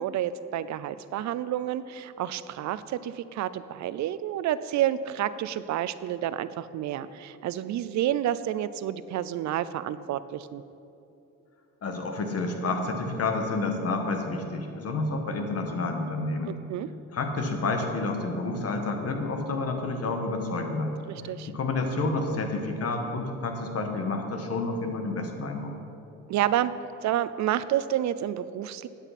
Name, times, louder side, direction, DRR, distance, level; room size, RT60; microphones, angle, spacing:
voice 1, 0.0-10.6 16.5-16.9 21.1-21.5 26.3-26.7 27.0-28.9, right 11 dB, 70° right, 15 dB, 0.5 m, -29 dB
voice 2, 11.8-16.5 17.1-20.9 21.5-25.7, left 3 dB, 55° left, 4 dB, 1.4 m, -29 dB
13.5 x 9.0 x 4.2 m, 2.8 s
cardioid pair, 90°, 30 cm